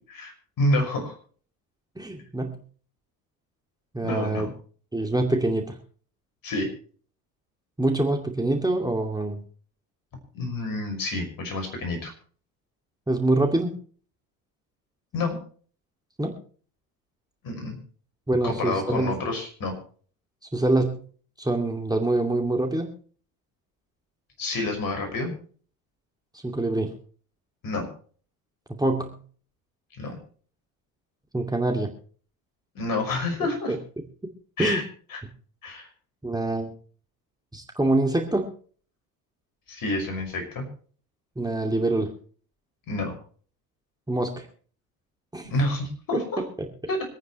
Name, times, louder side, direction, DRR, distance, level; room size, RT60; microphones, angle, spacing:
voice 1, 0.1-1.1 4.0-4.5 6.4-6.7 10.3-12.1 15.1-15.4 17.4-17.8 18.4-19.7 24.4-25.3 27.6-27.9 30.0-30.2 32.7-33.7 34.6-34.8 35.1-35.2 35.6-35.9 39.7-40.7 42.9-43.2 45.4-46.4 46.9-47.0, left 2 dB, 45° left, 4 dB, 6.1 m, -28 dB
voice 2, 2.0-2.6 3.9-4.5 4.9-5.8 7.8-9.4 13.1-13.7 16.2-16.4 18.3-19.1 20.5-21.0 21.4-22.9 26.4-26.9 28.8-29.2 31.3-31.9 33.7-33.8 34.6-34.8 36.2-36.7 37.5-38.5 41.4-42.1 44.1-44.5 45.3-45.5, right 2 dB, 10° right, 2 dB, 2.5 m, -25 dB
25.5 x 9.3 x 3.2 m, 0.43 s
hypercardioid pair, 70°, 45 cm